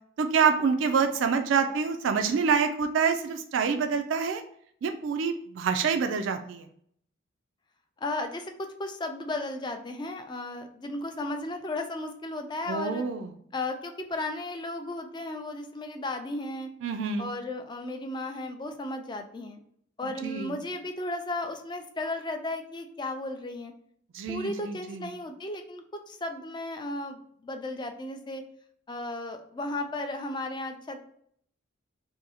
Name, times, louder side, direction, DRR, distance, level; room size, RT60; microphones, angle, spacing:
voice 1, 0.2-4.4 4.8-6.6 12.7-13.3 16.8-17.3 20.0-20.5 24.1-25.1, right 5 dB, 70° right, 6 dB, 0.3 m, -27 dB
voice 2, 8.0-13.0 13.5-16.7 17.2-19.6 20.0-23.7 24.3-28.4 28.9-31.0, left 2 dB, 20° left, 6 dB, 0.4 m, -35 dB
2.7 x 2.6 x 4.1 m, 0.64 s
head